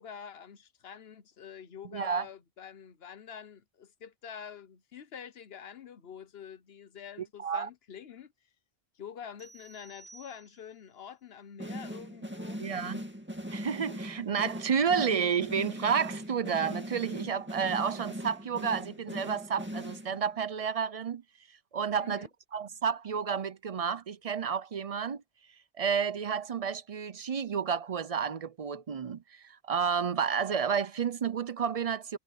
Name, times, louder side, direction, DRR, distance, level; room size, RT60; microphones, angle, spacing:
voice 1, 0.0-8.3 8.9-12.6 22.0-22.3, left 8 dB, 75° left, 1.2 m, -46 dB
voice 2, 1.9-2.3 7.2-7.7 12.6-13.0 13.5-21.2 21.7-22.3 22.5-25.2 25.8-32.2, right 7 dB, 45° right, 0.5 m, -31 dB
sound 1, 9.4-11.0, right 3 dB, 90° right, 4.4 m, -55 dB
sound 2, 11.6-20.4, equal, 10° right, 2.2 m, -40 dB
omnidirectional pair, 1.1 m